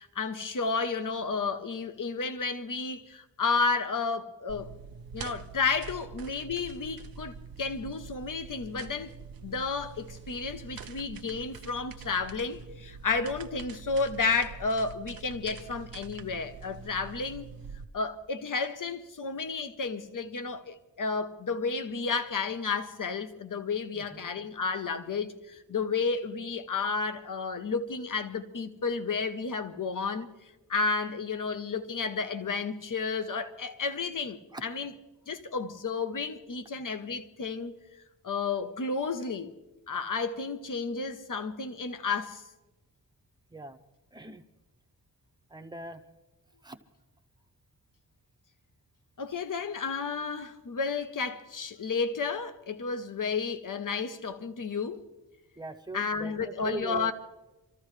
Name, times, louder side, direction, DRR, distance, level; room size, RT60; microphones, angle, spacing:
voice 1, 0.0-4.7 5.1-9.1 9.4-17.4 17.9-30.3 30.7-34.9 35.3-37.8 38.2-39.5 39.9-42.4 49.2-55.1 55.9-57.1, left 4 dB, 50° left, 0.9 m, -32 dB
sound 1, 4.5-17.8, right 6 dB, 55° right, 0.7 m, -45 dB
voice 2, 23.9-24.3 34.5-34.6 43.5-43.8 44.1-44.4 45.5-46.0 46.6-46.8 55.6-57.1, right 2 dB, 10° right, 0.8 m, -40 dB
26.0 x 14.0 x 3.3 m
wide cardioid pair, 115°, 41 cm